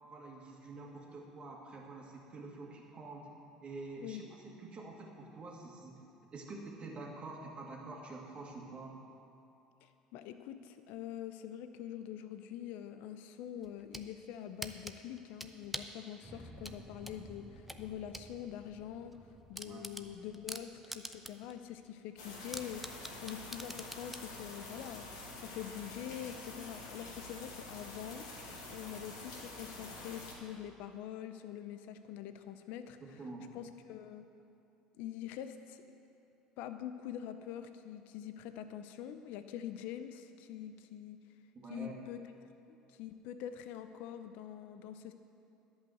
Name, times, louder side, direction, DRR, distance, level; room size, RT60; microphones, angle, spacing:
voice 1, 0.1-3.3 3.6-6.0 6.3-9.0 19.1-19.2 19.7-19.9 33.2-33.5 41.5-42.0, right 3 dB, 40° right, -1 dB, 2.2 m, -47 dB
voice 2, 9.8-19.2 19.5-25.1 25.4-28.3 28.7-33.2 33.5-34.3 35.0-35.8 36.6-41.2 41.7-42.2 42.7-45.1, left 10 dB, 70° left, 9 dB, 0.5 m, -45 dB
sound 1, 13.6-14.1 14.6-16.0 16.6-18.3 18.7-18.8 19.1-19.2 19.5-21.5 21.9-22.0 22.5-24.3, right 1 dB, 5° right, 0.7 m, -44 dB
sound 2, 16.2-22.3, equal, 20° right, 2.1 m, -56 dB
sound 3, 22.2-30.3, left 2 dB, 85° left, 2.0 m, -47 dB
11.0 x 5.6 x 7.9 m, 2.7 s
hypercardioid pair, 70°, 3 cm